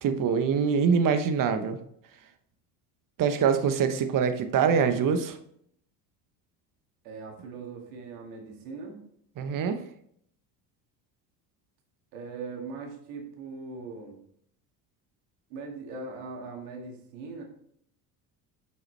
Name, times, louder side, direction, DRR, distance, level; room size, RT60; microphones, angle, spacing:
voice 1, 0.0-1.8 3.2-5.4 9.4-9.8, right 6 dB, 45° right, 9 dB, 1.0 m, -24 dB
voice 2, 7.0-9.0 12.1-14.2 15.5-17.4, right 4 dB, 90° right, 1 dB, 2.1 m, -40 dB
7.6 x 5.6 x 3.3 m, 0.69 s
supercardioid pair, 100°, 45 cm